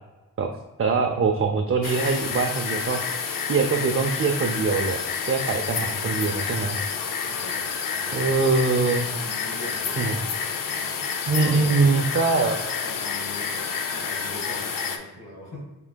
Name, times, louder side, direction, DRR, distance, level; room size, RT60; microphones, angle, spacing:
voice 1, 0.8-3.0 3.4-6.8 8.1-9.1 10.0-10.2 11.3-12.6, right 4 dB, 35° right, 3 dB, 0.4 m, -23 dB
sound 1, 1.8-15.0, left 6 dB, 60° left, 0.5 m, -29 dB
voice 2, 5.5-6.1 7.3-8.2 9.1-10.4 10.7-11.0 11.4-11.8 12.8-15.6, left 1 dB, 80° left, -6 dB, 1.4 m, -42 dB
5.8 x 3.7 x 2.2 m, 1.1 s
wide cardioid pair, 90°, 38 cm